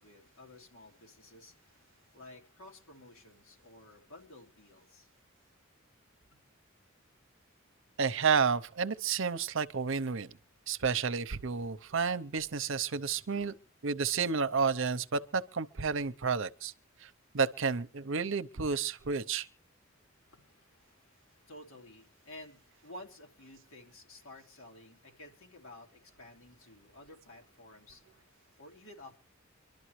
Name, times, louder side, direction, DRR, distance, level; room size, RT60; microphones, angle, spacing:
voice 1, 0.0-5.2 20.3-29.2, left 1 dB, 80° left, 2.9 m, -53 dB
voice 2, 8.0-10.3 10.7-13.6 13.8-16.7 17.0-19.5, right 5 dB, 65° right, 0.8 m, -31 dB
25.0 x 12.0 x 3.2 m
head